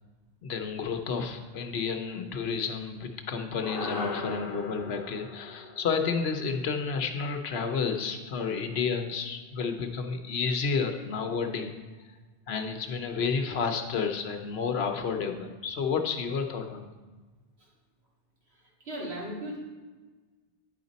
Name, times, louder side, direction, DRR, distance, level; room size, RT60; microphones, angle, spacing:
voice 1, 0.4-11.7 12.5-16.9, left 5 dB, 85° left, 5 dB, 1.0 m, -31 dB
sound 1, 3.6-8.1, left 3 dB, 60° left, 1.0 m, -40 dB
voice 2, 18.6-19.6, right 1 dB, 90° right, -5 dB, 2.3 m, -37 dB
9.2 x 5.2 x 4.0 m, 1.3 s
omnidirectional pair, 1.0 m